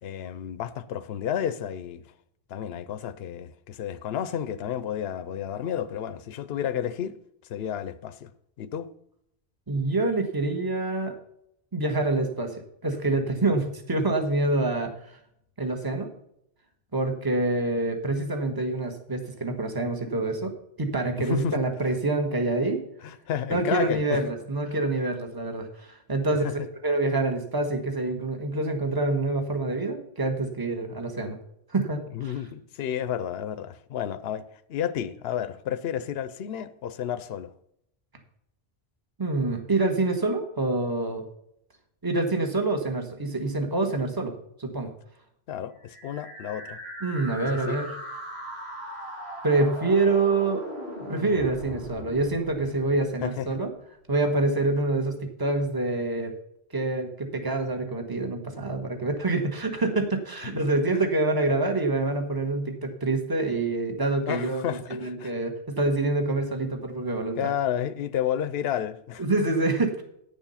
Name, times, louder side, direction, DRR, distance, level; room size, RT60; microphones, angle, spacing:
voice 1, 0.0-2.0 2.5-7.2 7.5-8.3 8.6-8.9 21.2-21.6 23.0-24.2 26.3-26.5 32.1-34.4 34.7-37.5 45.5-46.8 47.7-47.8 53.2-53.6 60.4-60.6 64.3-65.3 67.4-69.2, left 9 dB, 75° left, 0.8 m, -31 dB
voice 2, 9.7-11.1 11.7-12.5 12.8-14.9 15.6-16.1 16.9-22.8 23.5-26.4 26.8-31.4 31.7-32.3 39.2-41.2 42.0-44.3 44.6-44.9 47.0-47.9 49.4-50.6 51.1-53.7 54.1-56.3 56.7-67.5 69.2-70.0, right 2 dB, 20° right, 1.3 m, -26 dB
sound 1, 45.8-53.7, equal, 90° right, 4.9 m, -39 dB
9.9 x 7.0 x 5.6 m
omnidirectional pair, 1.1 m